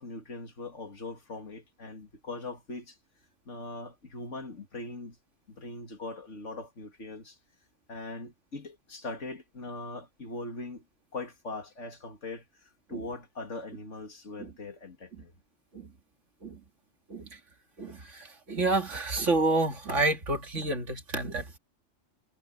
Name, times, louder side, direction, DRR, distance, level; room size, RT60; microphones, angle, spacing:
voice 1, 0.0-3.0 3.5-5.2 5.5-7.4 7.9-10.8 11.1-12.5 12.9-15.3, left 2 dB, 85° left, 2.9 m, -41 dB
voice 2, 17.8-21.6, right 2 dB, 85° right, 2.6 m, -29 dB
omnidirectional pair, 1.2 m